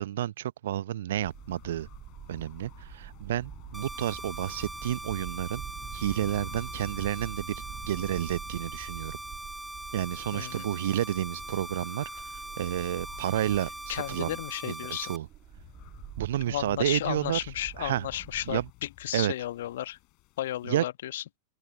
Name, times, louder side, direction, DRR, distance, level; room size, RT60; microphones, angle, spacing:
voice 1, 0.0-1.9 2.3-5.6 5.9-9.2 9.9-12.1 12.6-14.4 14.6-15.3 16.2-17.4 17.8-18.1 18.5-18.6 19.1-19.3 20.6-20.8, right 12 dB, 60° right, 0.9 m, -30 dB
sound 1, 1.1-18.7, right 12 dB, 30° right, 1.6 m, -46 dB
sound 2, 1.2-20.8, left 25 dB, 40° left, 6.3 m, -53 dB
sound 3, 3.7-15.2, right 1 dB, 5° right, 0.5 m, -41 dB
voice 2, 10.3-10.7 13.9-15.1 16.5-20.0 20.4-21.2, left 13 dB, 60° left, 1.4 m, -34 dB
open air
figure-of-eight pair, 90°, 0 cm